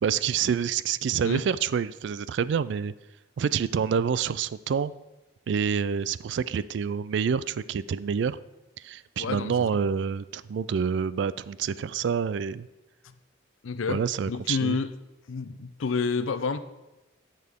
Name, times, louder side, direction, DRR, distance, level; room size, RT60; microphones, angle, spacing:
voice 1, 0.0-2.9 3.4-4.9 5.5-8.4 8.8-12.7 13.9-14.8, right 7 dB, 60° right, 17 dB, 0.3 m, -27 dB
voice 2, 9.2-9.7 13.6-14.0 14.3-14.9 15.3-16.6, left 5 dB, 85° left, 12 dB, 0.5 m, -29 dB
10.5 x 6.6 x 3.6 m, 1.0 s
head